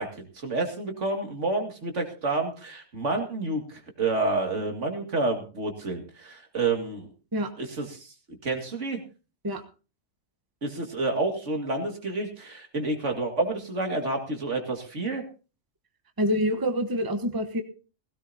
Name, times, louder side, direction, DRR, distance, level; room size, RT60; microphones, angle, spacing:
voice 1, 0.0-7.1 7.6-9.0 10.6-15.2, right 3 dB, 70° right, 4 dB, 2.4 m, -29 dB
voice 2, 16.2-17.6, equal, 20° right, 7 dB, 1.0 m, -26 dB
16.5 x 16.0 x 2.7 m, 0.35 s
omnidirectional pair, 1.3 m